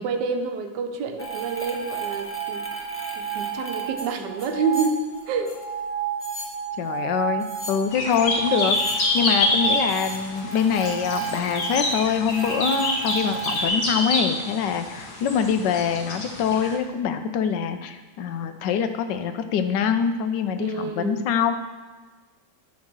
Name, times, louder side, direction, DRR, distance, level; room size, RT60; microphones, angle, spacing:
voice 1, 0.0-2.9 3.2-5.6 20.6-21.3, right 5 dB, 85° right, 6 dB, 1.3 m, -28 dB
sound 1, 1.2-13.7, right 6 dB, 15° left, 0.5 m, -31 dB
voice 2, 6.8-21.5, left 7 dB, 85° left, 9 dB, 1.3 m, -24 dB
sound 2, 7.9-16.7, left 2 dB, 65° left, 1.8 m, -27 dB
11.0 x 3.7 x 6.1 m, 1.3 s
omnidirectional pair, 1.8 m